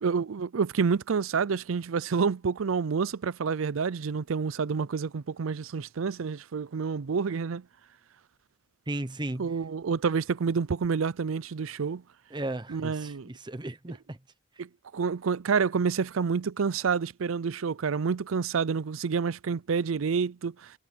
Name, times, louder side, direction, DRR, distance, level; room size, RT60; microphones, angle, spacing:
voice 1, 0.0-7.6 9.4-12.0 12.7-13.3 14.6-20.7, right 5 dB, 85° right, 0.5 m, -28 dB
voice 2, 8.9-9.5 12.3-14.2, right 1 dB, 20° right, 0.9 m, -35 dB
head